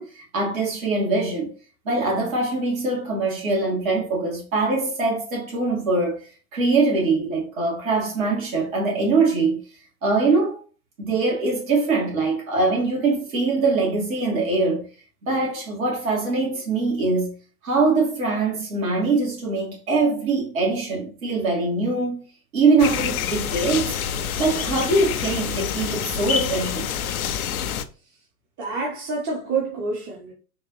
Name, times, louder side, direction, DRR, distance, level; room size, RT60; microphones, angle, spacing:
voice 1, 0.0-1.5 1.9-6.2 6.5-9.6 10.0-10.6 11.0-14.9 15.2-17.3 17.6-22.2 22.5-24.0 24.4-26.9, right 3 dB, 60° right, 1.9 m, -23 dB
sound 1, 22.8-27.8, left 8 dB, 70° left, 0.5 m, -27 dB
voice 2, 28.6-30.3, right 4 dB, 35° right, 1.1 m, -27 dB
3.9 x 2.5 x 3.1 m
figure-of-eight pair, 95°, 45 cm